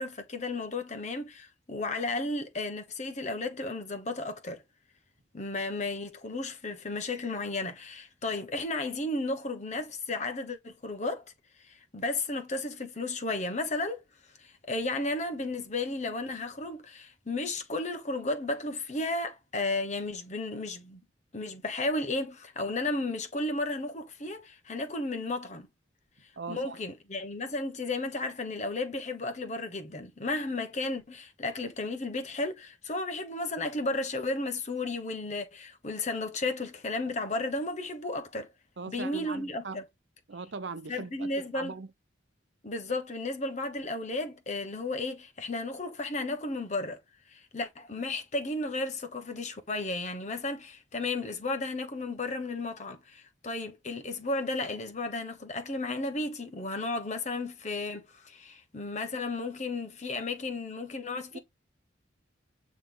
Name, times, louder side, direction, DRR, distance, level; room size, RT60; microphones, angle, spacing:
voice 1, 0.0-4.6 5.3-11.3 11.6-14.0 14.4-21.0 21.3-25.7 26.5-38.5 38.9-39.8 40.9-41.7 42.6-47.0 47.3-61.4, left 2 dB, 40° left, 1.1 m, -33 dB
voice 2, 26.4-26.8 38.8-39.8 40.3-41.9 61.3-61.4, right 4 dB, 70° right, 0.7 m, -40 dB
8.8 x 3.2 x 3.9 m
head